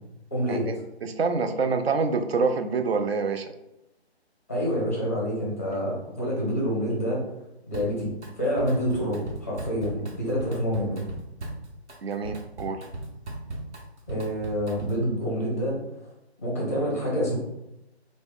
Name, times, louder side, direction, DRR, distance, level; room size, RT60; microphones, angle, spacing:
voice 1, 0.3-0.7 4.5-7.2 7.7-11.0 14.1-16.1 16.4-17.3, equal, 15° left, -4 dB, 0.5 m, -27 dB
voice 2, 1.0-3.5 12.0-12.8, right 4 dB, 65° right, 7 dB, 0.5 m, -26 dB
Drum kit, 7.7-8.3 8.6-15.1, right 1 dB, 85° right, 0.9 m, -38 dB
3.4 x 2.0 x 3.5 m, 0.91 s
figure-of-eight pair, 160°, 33 cm